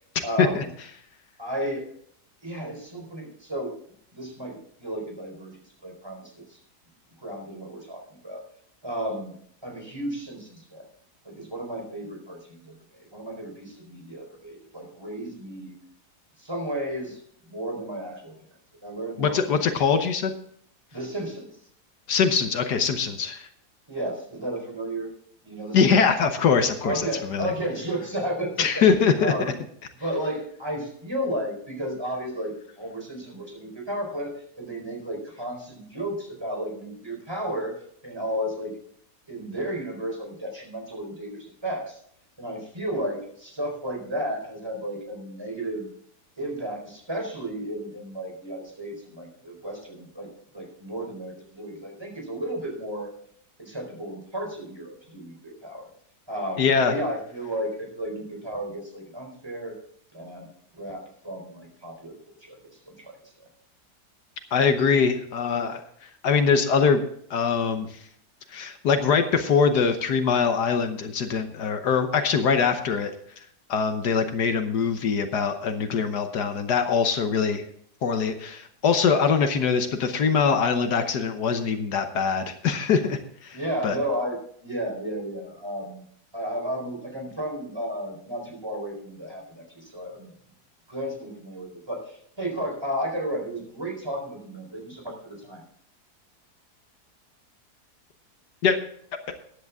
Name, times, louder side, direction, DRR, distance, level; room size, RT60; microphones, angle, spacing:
voice 1, 0.2-0.7 1.4-1.9 2.4-3.7 4.1-5.5 5.8-6.6 7.2-8.4 8.8-9.3 9.6-10.9 11.2-15.7 16.4-17.2 17.5-18.3 18.8-19.6 20.9-21.6 23.9-25.1 25.4-25.8 26.8-28.8 29.2-29.5 30.0-37.7 38.0-38.7 39.3-42.0 42.4-45.9 46.4-53.1 53.6-55.9 56.3-59.7 60.1-63.2 83.5-86.0 86.3-90.3 90.9-95.6, right 1 dB, 15° right, 1 dB, 4.3 m, -33 dB
voice 2, 19.2-20.3 22.1-23.5 25.7-27.5 28.6-29.5 56.6-57.0 64.5-67.0 67.3-68.0 68.5-73.1 73.7-77.6 78.0-83.6 83.8-84.0 98.6-98.8, left 6 dB, 75° left, 7 dB, 1.6 m, -23 dB
14.5 x 10.5 x 3.6 m, 0.64 s
omnidirectional pair, 1.8 m